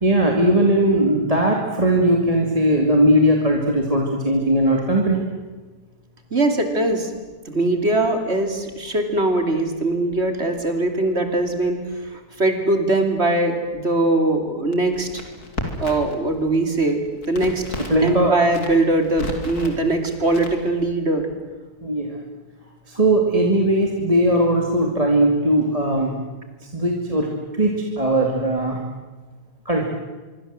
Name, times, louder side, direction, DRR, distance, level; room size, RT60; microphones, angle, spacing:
voice 1, 0.0-5.3 17.9-18.4 19.6-19.7 21.8-22.1 22.9-26.2 26.7-27.3 27.6-28.8 29.7-29.8, right 1 dB, 20° right, 1 dB, 2.6 m, -19 dB
voice 2, 6.3-7.1 7.4-15.2 15.8-17.6 18.0-21.3, right 2 dB, 40° right, 6 dB, 3.3 m, -21 dB
Crackle, 14.7-16.2 16.5-18.1 18.4-19.8 20.3-20.9, left 2 dB, 65° left, 3.8 m, -33 dB
25.0 x 24.5 x 7.7 m, 1.3 s
omnidirectional pair, 1.8 m